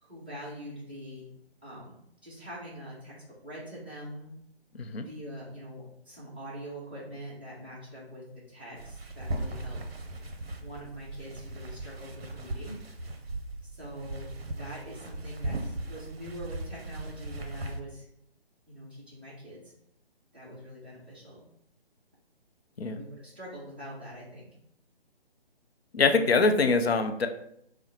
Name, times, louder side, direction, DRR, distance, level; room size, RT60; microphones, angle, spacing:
voice 1, 0.0-1.3 1.6-1.9 2.2-3.1 3.4-4.3 5.0-9.8 10.6-12.8 13.7-18.0 18.7-19.6 20.3-21.4 22.9-24.4, equal, 10° right, -11 dB, 0.5 m, -43 dB
sound 1, 8.8-17.8, right 1 dB, 70° right, 0.6 m, -38 dB
voice 2, 25.9-27.3, left 4 dB, 75° left, 6 dB, 0.5 m, -24 dB
3.0 x 2.0 x 3.9 m, 0.74 s
figure-of-eight pair, 145°, 31 cm